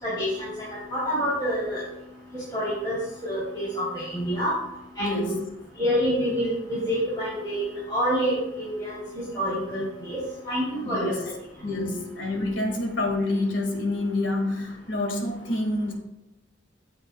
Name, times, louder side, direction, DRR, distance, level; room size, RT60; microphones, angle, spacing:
voice 1, 0.0-1.8 2.5-3.0 3.2-4.5 5.0-5.4 5.8-10.2 10.4-11.2, equal, 25° left, -9 dB, 3.1 m, -27 dB
voice 2, 5.0-5.4 10.8-11.2 11.6-15.9, left 2 dB, 85° left, 3 dB, 1.8 m, -27 dB
13.5 x 6.8 x 2.2 m, 0.92 s
head